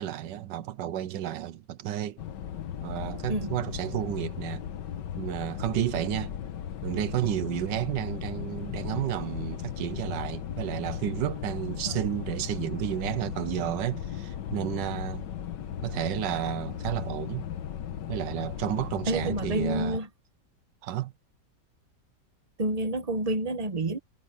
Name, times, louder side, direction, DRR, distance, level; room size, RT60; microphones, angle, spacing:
voice 1, 0.0-2.2 2.8-4.6 5.2-6.3 6.8-15.3 15.8-17.5 18.1-20.0 20.8-21.1, right 11 dB, 90° right, 1.5 m, -31 dB
sound 1, 2.2-20.0, left 9 dB, 80° left, 1.6 m, -36 dB
voice 2, 19.1-20.1 22.6-24.0, right 1 dB, 25° right, 1.3 m, -29 dB
omnidirectional pair, 1.9 m